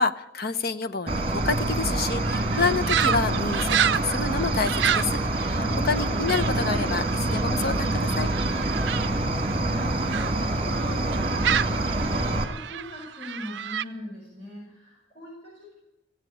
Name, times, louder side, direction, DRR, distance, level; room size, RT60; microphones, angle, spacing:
voice 1, 0.0-5.6 5.8-8.3, left 4 dB, 55° left, 11 dB, 0.8 m, -28 dB
Cricket, 1.1-12.5, right 2 dB, 30° right, 1.8 m, -26 dB
sound 1, 2.2-10.3 10.7-13.8, right 8 dB, 65° right, 0.5 m, -30 dB
voice 2, 5.5-6.0 8.5-15.7, left 1 dB, 30° left, -6 dB, 6.1 m, -42 dB
16.5 x 8.2 x 9.8 m, 0.91 s
head